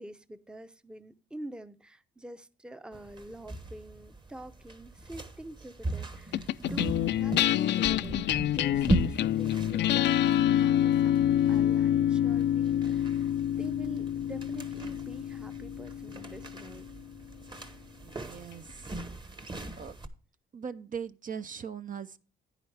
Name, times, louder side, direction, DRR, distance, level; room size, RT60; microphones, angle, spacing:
voice 1, 0.0-13.3 13.6-16.9, right 1 dB, 5° right, 0.6 m, -46 dB
Creaking Footsteps, 2.9-20.1, right 2 dB, 25° right, 1.1 m, -38 dB
sound 1, 6.3-16.9, left 11 dB, 60° left, 0.4 m, -27 dB
voice 2, 18.0-19.0 19.8-20.0 20.5-22.2, right 7 dB, 45° right, 0.6 m, -40 dB
9.9 x 9.8 x 3.3 m
cardioid pair, 90°, 20 cm